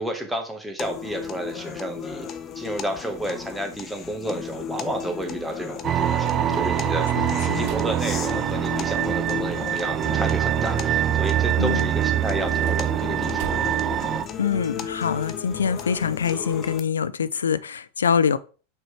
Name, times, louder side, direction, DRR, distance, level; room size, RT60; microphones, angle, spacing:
voice 1, 0.0-2.3 2.5-13.5, right 1 dB, 5° right, 1.5 m, -31 dB
sound 1, 0.8-16.8, left 8 dB, 35° left, 0.7 m, -35 dB
sound 2, 5.8-14.2, right 11 dB, 35° right, 0.4 m, -24 dB
voice 2, 7.2-7.7 11.6-11.9 14.4-18.4, left 7 dB, 80° left, 0.4 m, -24 dB
sound 3, 7.6-9.0 12.3-14.0, right 4 dB, 50° right, 2.4 m, -42 dB
6.2 x 4.7 x 3.3 m
figure-of-eight pair, 90°, 0 cm